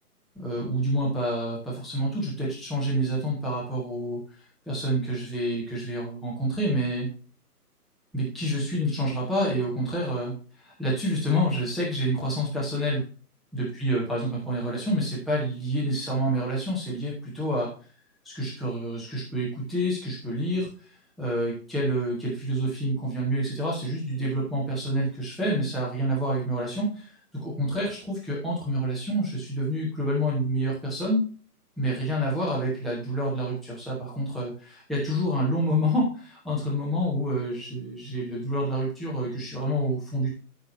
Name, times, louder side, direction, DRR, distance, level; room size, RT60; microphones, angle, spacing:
voice 1, 0.3-4.2 4.7-7.1 8.1-13.0 13.5-17.7 18.2-20.7 21.2-27.1 27.4-31.2 31.8-40.3, equal, ahead, -6 dB, 1.0 m, -28 dB
13.0 x 5.8 x 2.7 m, 0.37 s
figure-of-eight pair, 145°, 47 cm